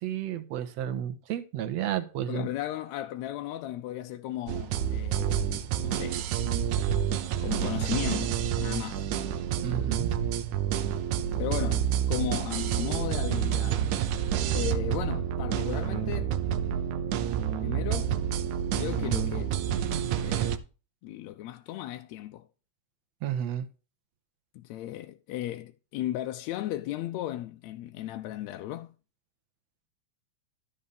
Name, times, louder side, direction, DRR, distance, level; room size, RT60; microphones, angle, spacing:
voice 1, 0.0-2.5 9.6-10.1 23.2-23.7, right 10 dB, 70° right, 2.2 m, -32 dB
voice 2, 2.3-6.2 7.4-9.1 11.4-13.9 14.5-16.4 17.6-18.2 18.7-19.6 20.2-20.6 21.0-22.5 24.6-29.0, left 13 dB, 80° left, 1.8 m, -35 dB
sound 1, 4.5-20.6, right 9 dB, 85° right, 2.2 m, -28 dB
13.0 x 5.6 x 5.1 m
omnidirectional pair, 3.3 m